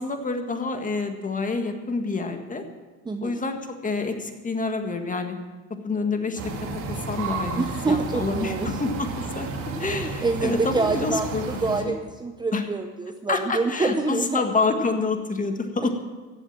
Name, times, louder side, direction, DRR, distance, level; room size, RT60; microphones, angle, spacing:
voice 1, 0.0-2.6 3.2-5.4 5.8-6.5 6.9-9.5 9.8-11.4 11.8-11.9 12.5-12.6 13.3-15.9, left 3 dB, 20° left, 6 dB, 1.8 m, -27 dB
voice 2, 3.0-3.4 7.6-8.8 9.8-11.3 11.6-14.4, right 3 dB, 10° right, 5 dB, 0.8 m, -27 dB
sound 1, 6.4-11.8, right 4 dB, 60° right, 2.9 m, -32 dB
14.5 x 8.0 x 7.5 m, 1.3 s
supercardioid pair, 95°, 37 cm